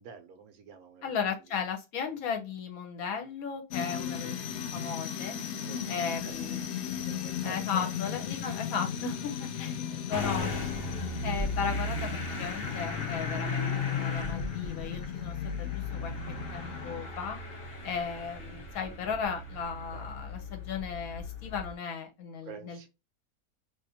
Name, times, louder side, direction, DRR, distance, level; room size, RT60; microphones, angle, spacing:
voice 1, 0.0-1.6 5.6-7.9 8.8-8.9 9.2-9.3 9.8-10.0 19.9-20.1 22.4-22.9, right 6 dB, 70° right, 1.1 m, -50 dB
voice 2, 1.0-5.4 5.9-6.6 7.4-9.8 10.1-10.6 10.9-16.1 16.5-17.4 17.8-22.9, left 6 dB, 70° left, 1.1 m, -36 dB
sound 1, 3.7-17.0, left 9 dB, 85° left, 0.6 m, -37 dB
Motor vehicle (road) / Engine starting, 10.1-21.7, left 2 dB, 50° left, 0.7 m, -36 dB
2.7 x 2.5 x 4.1 m
omnidirectional pair, 1.7 m